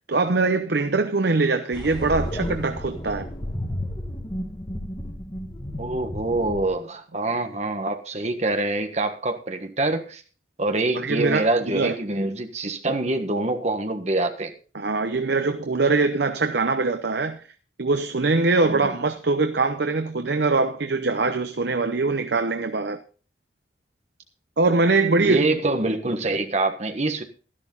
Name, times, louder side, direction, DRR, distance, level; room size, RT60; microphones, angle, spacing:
voice 1, 0.1-3.3 10.9-11.9 14.7-17.5 17.8-23.0 24.6-25.5, right 3 dB, 70° right, 0.8 m, -22 dB
sound 1, 1.7-6.7, equal, 25° left, 2.0 m, -32 dB
voice 2, 5.8-10.2 10.6-14.5 18.6-18.9 25.2-27.2, right 2 dB, 40° right, 1.5 m, -25 dB
13.0 x 11.5 x 3.9 m
head